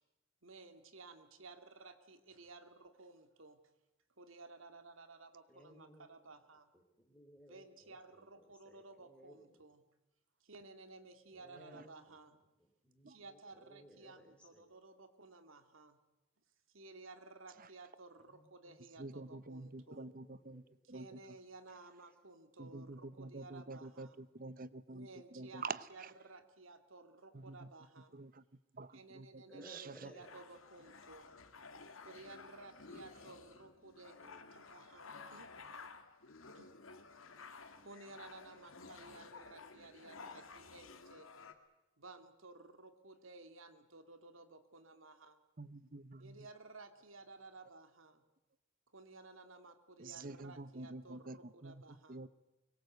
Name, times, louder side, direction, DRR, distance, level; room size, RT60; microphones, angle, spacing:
voice 1, 0.4-3.6 4.2-6.7 7.5-9.8 10.4-12.4 13.1-16.0 16.7-20.1 20.9-24.2 24.9-28.2 28.9-31.4 32.0-35.5 36.5-36.7 37.8-41.3 42.0-45.4 46.2-48.3 48.9-52.2, right 3 dB, 80° right, 9 dB, 2.3 m, -56 dB
voice 2, 5.5-6.3 6.7-9.6 11.3-14.6 18.2-19.0 19.7-20.7 25.8-25.9 29.5-30.3 34.2-34.7, equal, 5° left, 3 dB, 3.8 m, -62 dB
voice 3, 19.0-20.6 20.9-21.1 22.6-25.1 25.3-26.1 27.3-27.7 28.1-28.4 28.7-29.9 45.6-46.4 50.0-51.4 51.6-51.8 52.1-52.3, right 3 dB, 45° right, 17 dB, 0.9 m, -47 dB
sound 1, 30.2-41.5, left 4 dB, 85° left, 2.2 m, -54 dB
24.5 x 22.5 x 8.0 m, 0.97 s
head